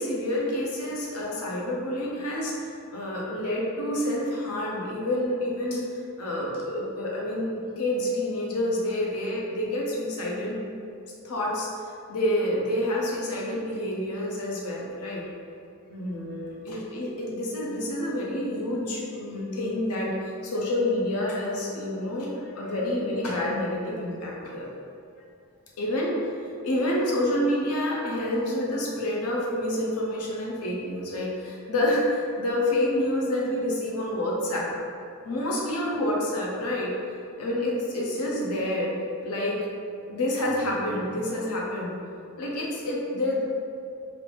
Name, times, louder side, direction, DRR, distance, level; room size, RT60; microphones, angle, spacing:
voice 1, 0.0-10.6 11.2-11.7 12.1-15.2 15.9-24.7 25.8-26.1 26.6-34.7 35.2-36.9 37.4-38.9 39.2-39.6 40.1-42.0 42.4-43.4, left 1 dB, 85° left, -3 dB, 0.7 m, -28 dB
3.3 x 2.5 x 3.2 m, 2.4 s
head